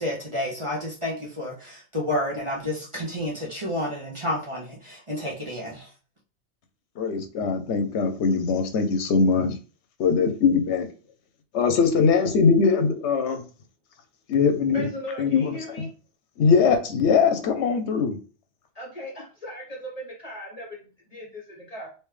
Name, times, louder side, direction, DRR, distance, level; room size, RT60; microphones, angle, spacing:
voice 1, 0.0-5.9, left 1 dB, 30° right, -4 dB, 0.8 m, -30 dB
voice 2, 7.0-9.6 10.0-10.9 11.5-13.4 14.3-14.9 15.2-15.9 16.4-18.2, left 5 dB, 80° left, 8 dB, 1.0 m, -21 dB
voice 3, 14.7-15.9 18.7-21.9, left 1 dB, 35° left, -2 dB, 1.2 m, -38 dB
3.4 x 3.0 x 3.2 m, 0.36 s
omnidirectional pair, 1.2 m